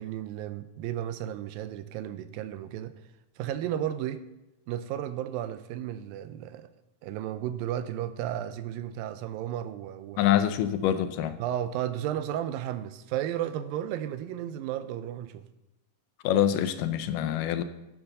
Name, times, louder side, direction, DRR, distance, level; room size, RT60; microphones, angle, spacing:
voice 1, 0.0-3.0 3.4-4.2 4.7-6.7 7.0-10.2 11.4-15.4, right 11 dB, 90° right, 12 dB, 2.3 m, -33 dB
voice 2, 10.2-11.4 16.2-17.6, left 11 dB, 80° left, 10 dB, 2.1 m, -25 dB
9.9 x 6.9 x 6.6 m, 0.94 s
omnidirectional pair, 4.1 m